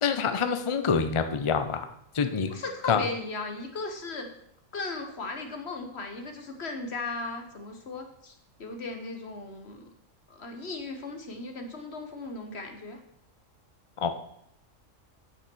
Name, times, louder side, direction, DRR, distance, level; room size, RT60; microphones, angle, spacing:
voice 1, 0.0-1.9 2.1-2.5 2.9-3.0 14.0-14.1, left 6 dB, 30° left, 8 dB, 0.6 m, -26 dB
voice 2, 2.5-4.3 4.7-8.3 8.6-9.9 10.3-13.0, left 3 dB, 55° left, 5 dB, 1.5 m, -37 dB
9.2 x 6.1 x 6.2 m, 0.75 s
omnidirectional pair, 1.4 m